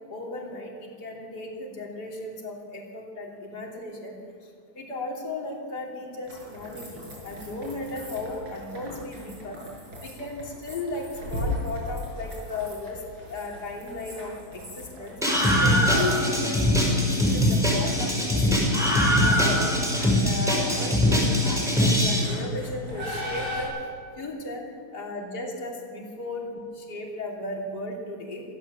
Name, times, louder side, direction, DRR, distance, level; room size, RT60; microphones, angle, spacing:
voice 1, 0.1-4.2 4.8-9.6 10.0-13.0 13.3-15.2 15.6-18.8 19.1-23.7 24.2-24.7 24.9-28.4, left 2 dB, 55° left, -2 dB, 3.7 m, -35 dB
sound 1, 6.2-23.6, left 1 dB, 85° right, 7.2 m, -39 dB
Screaming, 15.2-22.2, left 1 dB, ahead, 5.8 m, -22 dB
25.0 x 16.0 x 7.4 m, 2.1 s
omnidirectional pair, 2.2 m